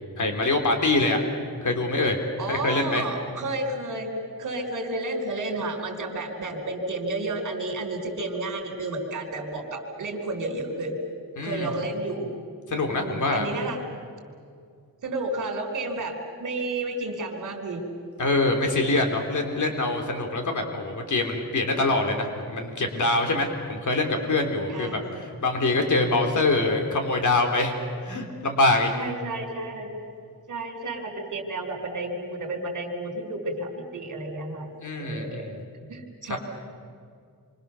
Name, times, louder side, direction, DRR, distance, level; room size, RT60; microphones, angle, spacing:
voice 1, 0.2-1.2 1.6-2.2 2.5-3.1 11.4-11.7 12.7-13.5 18.2-27.7 28.0-28.9 34.8-35.6 36.3-36.4, left 2 dB, 55° left, 4 dB, 3.4 m, -24 dB
voice 2, 2.4-4.1 4.4-11.0 11.4-12.3 12.9-13.8 15.0-17.8 24.7-25.1 28.9-29.9 30.5-34.7 35.0-35.5 35.9-36.4, right 2 dB, 55° right, 3 dB, 4.6 m, -31 dB
28.0 x 25.5 x 7.0 m, 2.3 s
wide cardioid pair, 180°, 36 cm